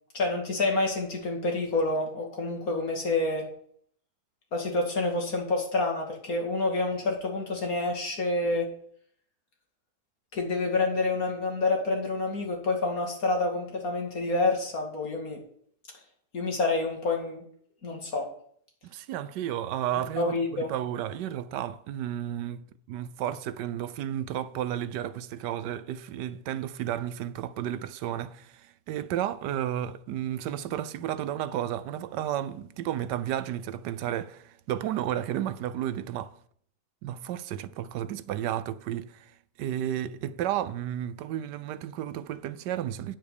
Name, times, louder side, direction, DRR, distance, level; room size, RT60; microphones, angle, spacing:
voice 1, 0.1-3.4 4.5-8.7 10.3-15.4 16.3-17.4 17.8-18.3 20.0-20.7, left 2 dB, 55° left, 2.6 m, -28 dB
voice 2, 18.8-36.4 37.0-43.2, right 11 dB, 85° right, 1.3 m, -32 dB
8.7 x 7.8 x 6.7 m
omnidirectional pair, 1.8 m